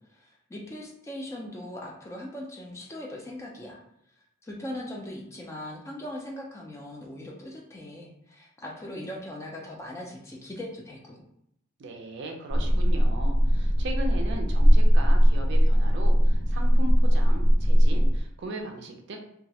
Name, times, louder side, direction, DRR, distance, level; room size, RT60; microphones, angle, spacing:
voice 1, 0.0-3.8 4.4-11.2, left 1 dB, 15° left, -1 dB, 0.3 m, -40 dB
voice 2, 11.8-19.2, right 1 dB, 60° right, 3 dB, 0.4 m, -38 dB
sound 1, 12.5-18.2, equal, 80° left, 0.9 m, -20 dB
2.2 x 2.0 x 2.7 m, 0.77 s
head